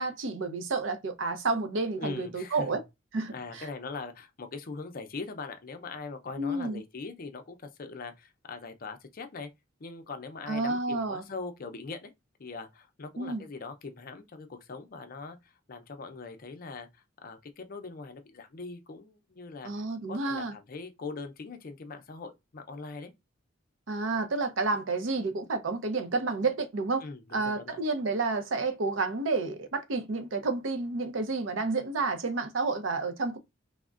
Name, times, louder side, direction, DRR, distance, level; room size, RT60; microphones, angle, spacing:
voice 1, 0.0-2.8 3.1-3.7 6.4-6.8 10.5-11.2 13.2-13.4 19.6-20.5 23.9-27.0 27.3-33.4, right 3 dB, 75° right, 0.6 m, -30 dB
voice 2, 2.0-2.8 3.3-9.5 9.8-12.1 12.4-23.1 27.0-27.8, left 4 dB, 45° left, 0.5 m, -41 dB
3.5 x 2.1 x 2.4 m
head